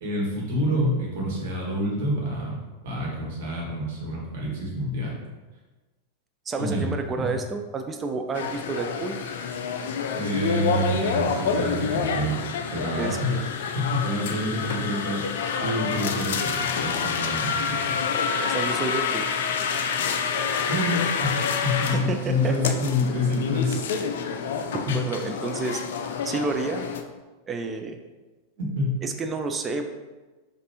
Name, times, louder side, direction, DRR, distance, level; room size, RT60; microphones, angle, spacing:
voice 1, 0.0-2.6 2.8-5.1 6.6-6.9 7.1-7.3 10.1-12.4 12.7-13.5 13.7-15.2 15.6-17.9 20.7-23.8 24.9-25.0 28.6-29.0, left 1 dB, 55° right, -3 dB, 1.3 m, -27 dB
voice 2, 6.5-9.2 12.9-13.5 18.4-19.3 21.9-22.7 24.7-25.8 26.2-26.9 27.5-28.0 29.0-29.9, right 4 dB, 20° right, 5 dB, 0.3 m, -30 dB
sound 1, 8.3-27.0, left 6 dB, 60° left, 0.3 m, -28 dB
5.1 x 2.5 x 2.8 m, 1.2 s
figure-of-eight pair, 90°, 0 cm